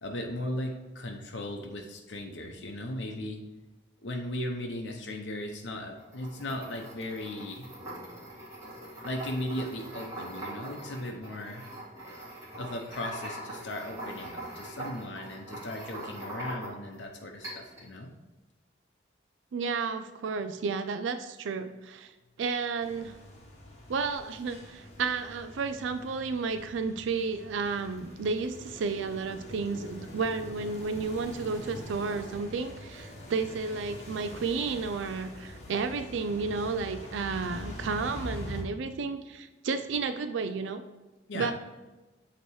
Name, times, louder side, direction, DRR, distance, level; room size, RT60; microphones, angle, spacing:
voice 1, 0.0-3.4 4.0-7.7 9.0-11.7 12.5-18.1 41.3-41.5, left 1 dB, 80° left, 2 dB, 0.7 m, -37 dB
sound 1, 6.0-17.0 17.4-17.9, right 1 dB, 15° right, 2.1 m, -42 dB
voice 2, 19.5-22.1 22.4-23.2 23.9-40.8 41.3-41.5, right 4 dB, 90° right, 9 dB, 0.4 m, -32 dB
sound 2, 22.8-38.6, left 1 dB, 35° left, 1.1 m, -44 dB
8.1 x 2.9 x 4.6 m, 1.1 s
head